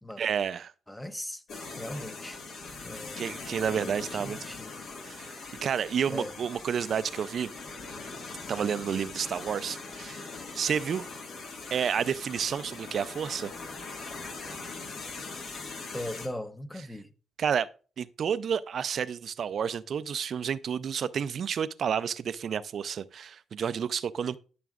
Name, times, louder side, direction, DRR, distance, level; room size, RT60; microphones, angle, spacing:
voice 1, 0.2-0.7 3.2-4.4 5.1-5.3 5.6-7.5 8.5-10.3 10.6-11.1 11.7-13.5 17.4-17.7 18.0-24.4, right 7 dB, 55° right, 0.4 m, -30 dB
voice 2, 0.9-1.4 1.8-2.4 2.8-3.2 3.7-4.8 6.1-6.3 15.9-17.1, left 1 dB, 10° left, 0.7 m, -39 dB
sound 1, 1.5-16.3, left 3 dB, 65° left, 1.7 m, -41 dB
12.5 x 6.0 x 2.4 m
cardioid pair, 90°, 0 cm